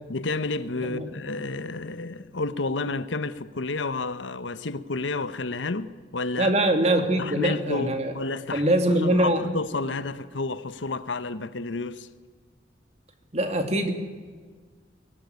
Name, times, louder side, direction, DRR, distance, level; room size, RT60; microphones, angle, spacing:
voice 1, 0.1-6.5 7.2-12.1, left 3 dB, 80° left, 1.0 m, -30 dB
voice 2, 6.4-8.1 8.5-9.4 13.3-13.9, right 1 dB, 35° right, 2.4 m, -23 dB
23.0 x 17.5 x 9.6 m
head